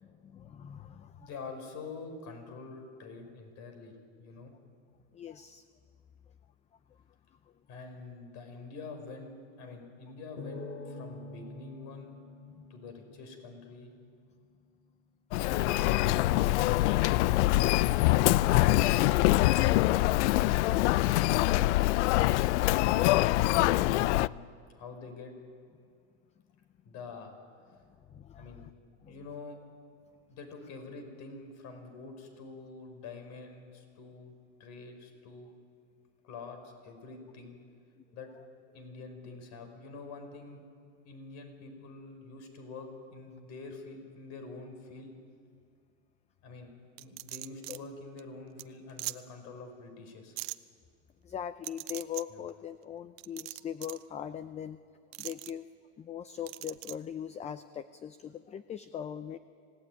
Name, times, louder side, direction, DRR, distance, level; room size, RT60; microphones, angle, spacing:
voice 1, 0.0-1.3 5.1-5.6 9.8-9.9 12.5-12.7 28.1-28.7 29.0-29.4 38.0-38.1 47.7-47.8 51.2-54.8 55.2-55.7 56.0-59.4, left 9 dB, 20° left, 13 dB, 0.5 m, -41 dB
voice 2, 1.2-4.5 7.7-12.1 12.7-13.9 20.9-24.4 24.7-25.3 26.9-27.3 28.4-28.6 29.1-29.6 30.3-34.3 34.6-35.5 36.2-37.6 38.1-38.3 38.7-40.7 41.1-45.1 46.4-50.4 52.3-52.4, left 3 dB, 50° left, 6 dB, 5.4 m, -46 dB
sound 1, 10.4-13.8, left 2 dB, 90° left, 3.7 m, -45 dB
Human voice, 15.3-24.3, left 17 dB, 70° left, 0.6 m, -24 dB
sound 2, 47.0-47.8 48.2-48.3 48.6-48.7 49.0-49.2 50.4-50.6 51.6-52.2 53.2-54.0 55.1-55.5 56.5-56.9, right 23 dB, 60° right, 0.9 m, -40 dB
26.5 x 17.5 x 9.4 m, 2.2 s
supercardioid pair, 135°, 36 cm